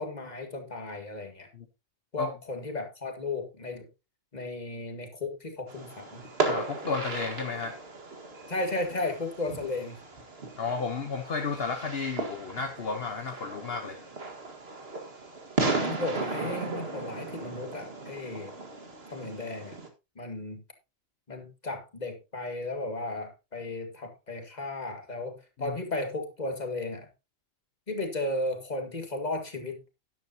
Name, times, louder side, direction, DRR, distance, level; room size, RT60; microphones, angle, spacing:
voice 1, 0.0-1.5 2.1-3.9 4.3-6.2 8.5-10.0 15.8-18.5 19.1-19.8 20.2-20.6 21.3-27.1 27.9-29.8, left 2 dB, 40° left, 5 dB, 2.2 m, -35 dB
Fireworks, 5.7-19.9, right 3 dB, 65° right, 2.1 m, -35 dB
voice 2, 6.4-7.8 10.6-14.0 25.6-25.7, left 4 dB, 65° left, 5 dB, 1.3 m, -32 dB
12.0 x 10.5 x 2.9 m, 0.26 s
omnidirectional pair, 1.1 m